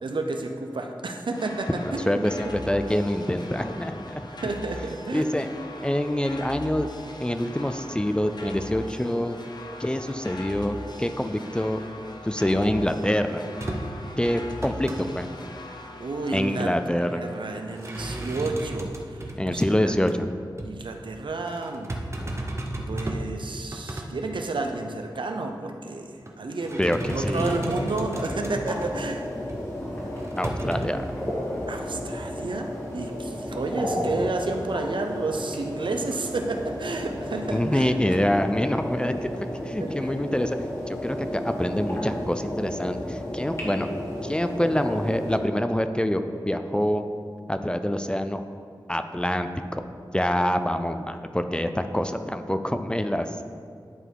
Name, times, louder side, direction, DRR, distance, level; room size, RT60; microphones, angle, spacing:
voice 1, 0.0-2.2 4.4-5.3 16.0-16.7 17.0-19.2 19.5-19.9 20.6-21.9 22.9-29.3 31.7-37.9 39.8-40.1, right 3 dB, 75° right, 4 dB, 0.7 m, -31 dB
sound 1, 1.3-18.2, left 2 dB, 60° left, 0.7 m, -41 dB
voice 2, 1.8-4.3 5.1-5.5 5.8-6.9 7.2-9.4 9.8-11.8 12.2-13.4 14.2-15.3 16.3-17.2 19.4-20.1 26.8-27.6 30.4-31.0 37.5-39.3 39.6-40.6 40.9-43.9 44.2-47.0 47.5-48.4 48.9-49.8 50.1-53.4, left 1 dB, 10° left, 8 dB, 0.4 m, -26 dB
sound 2, 13.6-14.0 14.4-15.0 17.7-19.7 20.1-20.3 20.6-20.7 21.5-23.3 23.6-24.1 24.6-24.7 26.0-26.3 26.6-29.0 29.5-29.6 30.2-30.9, right 1 dB, 35° right, 0.8 m, -34 dB
sound 3, 27.5-45.4, left 1 dB, 35° left, 1.9 m, -33 dB
11.0 x 4.1 x 4.6 m, 2.3 s
wide cardioid pair, 90°, 8 cm